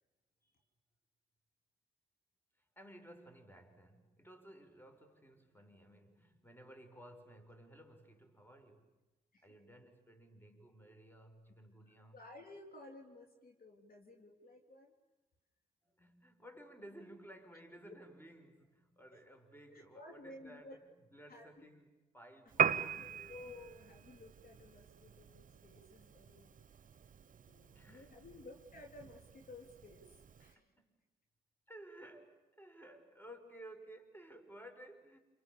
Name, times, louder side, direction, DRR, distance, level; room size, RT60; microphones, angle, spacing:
voice 1, 2.6-8.9 9.4-12.3 15.8-23.4 27.6-28.3 30.4-31.0 31.7-35.2, right 1 dB, 10° left, 7 dB, 5.4 m, -56 dB
voice 2, 11.8-14.9 17.9-18.0 19.1-19.2 19.7-20.8 21.3-21.7 23.0-26.6 27.5-30.7, left 2 dB, 45° left, 2 dB, 3.5 m, -55 dB
Piano, 22.5-30.5, right 7 dB, 40° right, 1.1 m, -41 dB
29.0 x 28.5 x 7.1 m, 1.1 s
hypercardioid pair, 45°, 20 cm